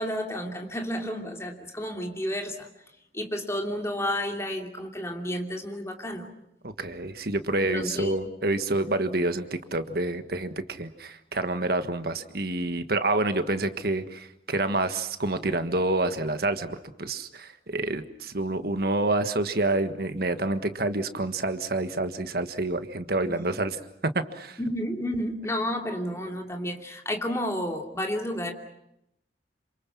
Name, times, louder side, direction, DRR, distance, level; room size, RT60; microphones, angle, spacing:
voice 1, 0.0-2.7 3.1-6.3 7.6-8.2 23.2-23.5 24.6-28.5, equal, 15° left, 3 dB, 2.8 m, -31 dB
voice 2, 6.6-23.8 24.1-24.6, right 2 dB, 55° right, 9 dB, 1.6 m, -28 dB
28.0 x 26.0 x 6.1 m, 0.81 s
head